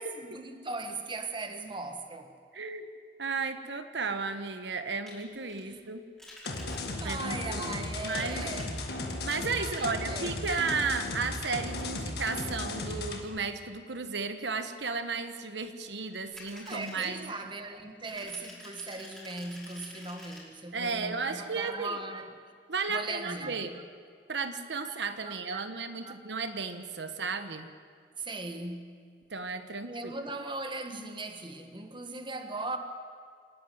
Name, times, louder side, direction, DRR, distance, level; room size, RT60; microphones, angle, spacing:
voice 1, 0.0-2.3 5.4-5.8 7.0-8.7 9.6-10.3 16.6-22.4 22.9-23.8 24.8-25.6 26.0-26.2 28.2-29.0 29.8-32.8, right 2 dB, 30° right, 1.4 m, -39 dB
voice 2, 2.5-2.9 3.2-6.0 7.0-7.7 8.0-8.5 9.2-17.3 20.7-22.0 22.7-23.8 24.3-27.7 29.3-30.1, right 4 dB, 80° right, 1.3 m, -34 dB
sound 1, 5.1-5.6 6.2-7.2 7.9-8.9 16.1-17.1 18.1-20.4, left 1 dB, 5° left, 5.3 m, -49 dB
sound 2, 6.4-13.2, left 2 dB, 65° left, 2.1 m, -36 dB
27.5 x 11.5 x 9.3 m
head